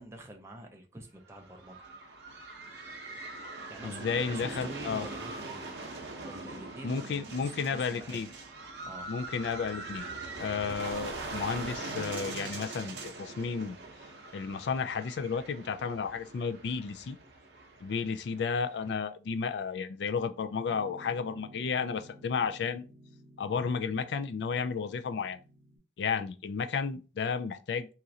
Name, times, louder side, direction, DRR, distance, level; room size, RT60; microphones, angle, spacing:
voice 1, 0.0-1.9 3.7-5.7 6.2-8.2 8.8-9.1, right 1 dB, 15° right, 0.4 m, -46 dB
sound 1, 1.3-18.9, right 3 dB, 85° right, 0.7 m, -42 dB
voice 2, 3.1-3.5 3.8-5.1 6.8-8.3 9.1-10.1 10.4-13.8 14.3-17.2 17.8-22.8 23.4-25.4 26.0-27.9, left 5 dB, 75° left, 0.3 m, -32 dB
Piano, 20.7-25.8, equal, 55° right, 0.8 m, -54 dB
3.0 x 2.4 x 2.6 m
head